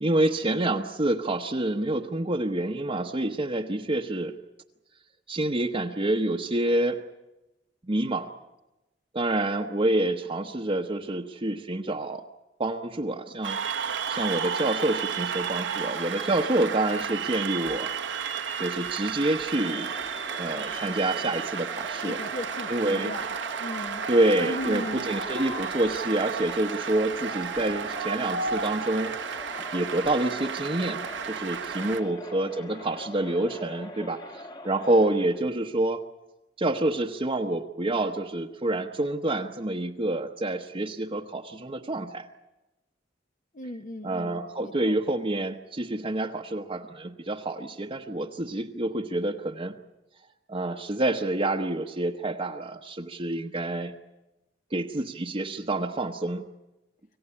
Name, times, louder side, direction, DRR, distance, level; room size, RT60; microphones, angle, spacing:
voice 1, 0.0-4.4 5.3-7.0 7.9-8.3 9.1-12.2 12.6-17.9 18.6-19.9 20.4-22.2 22.7-23.1 24.1-36.0 36.6-42.3 44.0-49.8 50.5-53.9 54.7-56.4, right 1 dB, 30° right, 1 dB, 1.0 m, -27 dB
Cheering / Applause, 13.4-32.0, right 6 dB, 85° right, 1.3 m, -32 dB
Crowd, 19.3-35.5, left 1 dB, 25° left, 1.3 m, -43 dB
voice 2, 22.0-24.1 24.4-25.1 31.8-32.1 43.5-45.0, left 1 dB, 45° left, 7 dB, 1.0 m, -38 dB
26.5 x 16.0 x 9.9 m, 1.0 s
head